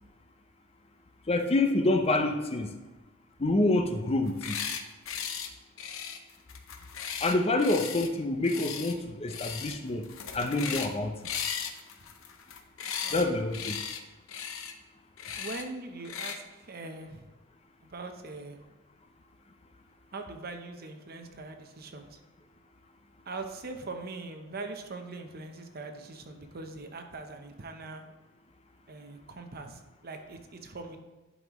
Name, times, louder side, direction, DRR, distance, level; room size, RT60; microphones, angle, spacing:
voice 1, 1.3-2.7 3.4-4.6 7.2-10.1 10.3-11.1 13.1-13.8, left 2 dB, 30° left, 6 dB, 0.6 m, -27 dB
sound 1, 4.2-4.8 5.1-5.5 5.8-8.1 8.4-8.9 9.3-9.8 10.0-10.9 11.2-13.2 13.5-14.0 14.3-14.7 15.2-15.6 16.0-16.4, left 7 dB, 70° left, 0.8 m, -37 dB
voice 2, 15.4-17.3 17.8-18.6 20.1-22.2 23.3-28.0 28.9-31.0, right 3 dB, 50° right, 6 dB, 0.8 m, -42 dB
11.0 x 5.3 x 3.1 m, 1.2 s
head